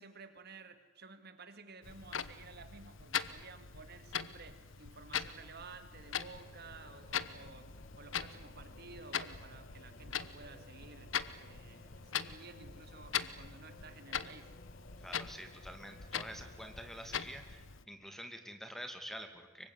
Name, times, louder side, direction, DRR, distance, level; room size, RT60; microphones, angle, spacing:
voice 1, 0.0-14.6, right 4 dB, 55° right, 2.2 m, -54 dB
Clock, 1.8-17.8, left 8 dB, 85° left, 1.1 m, -42 dB
Singing / Musical instrument, 5.9-18.5, left 2 dB, 50° left, 1.9 m, -59 dB
voice 2, 15.0-19.7, equal, ahead, 2.4 m, -47 dB
24.5 x 24.0 x 9.7 m
head